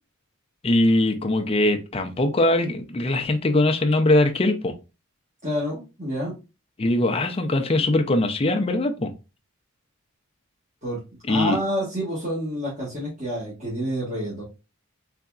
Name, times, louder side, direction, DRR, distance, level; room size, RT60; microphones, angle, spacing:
voice 1, 0.6-4.7 6.8-9.1 11.3-11.6, left 1 dB, 25° left, 0.5 m, -21 dB
voice 2, 5.4-6.3 10.8-11.0 11.3-14.4, equal, 35° right, 1.5 m, -28 dB
3.9 x 3.4 x 2.3 m
head